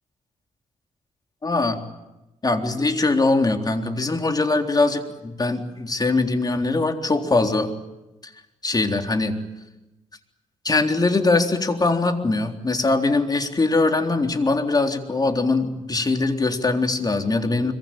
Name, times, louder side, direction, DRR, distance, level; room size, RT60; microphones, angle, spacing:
voice 1, 1.4-1.8 2.4-7.7 8.6-9.4 10.6-17.7, left 3 dB, 30° left, 5 dB, 3.8 m, -22 dB
25.5 x 24.0 x 9.0 m, 1.0 s
cardioid pair, 85°, 13 cm